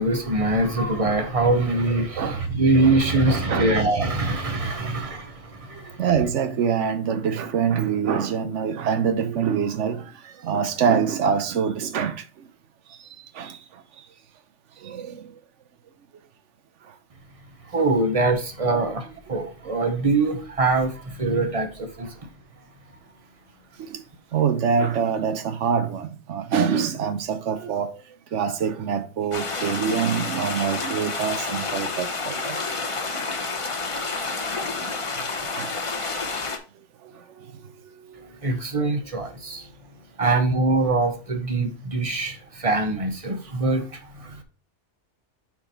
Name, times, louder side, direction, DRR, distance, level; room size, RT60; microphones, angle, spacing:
voice 1, 0.0-6.0 17.7-22.1 38.3-39.7 40.2-44.4, right 2 dB, 30° right, 1.0 m, -23 dB
voice 2, 3.3-3.7 5.7-12.2 13.3-13.6 14.8-15.3 18.7-18.9 23.8-24.0 24.3-27.9 28.3-32.6 33.2-33.3 34.8-34.9 35.5-35.8 37.4-37.5 38.1-38.3 40.2-40.3, right 7 dB, 85° right, 1.1 m, -25 dB
sound 1, 29.3-36.6, left 3 dB, 30° left, 0.8 m, -29 dB
5.9 x 4.5 x 4.2 m
omnidirectional pair, 1.2 m